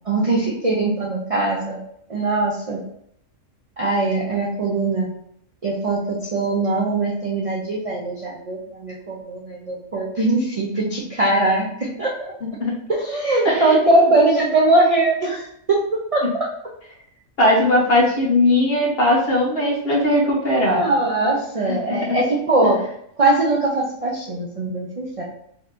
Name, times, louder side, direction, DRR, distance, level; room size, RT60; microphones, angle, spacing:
voice 1, 0.1-1.8 2.1-2.8 3.8-5.1 5.6-12.2 12.9-16.5 20.7-22.8 23.2-25.2, right 2 dB, 55° right, -3 dB, 0.4 m, -21 dB
voice 2, 13.4-14.1 17.4-20.8 21.9-22.2, left 1 dB, 50° left, -3 dB, 1.1 m, -19 dB
3.8 x 2.8 x 2.5 m, 0.70 s
omnidirectional pair, 1.3 m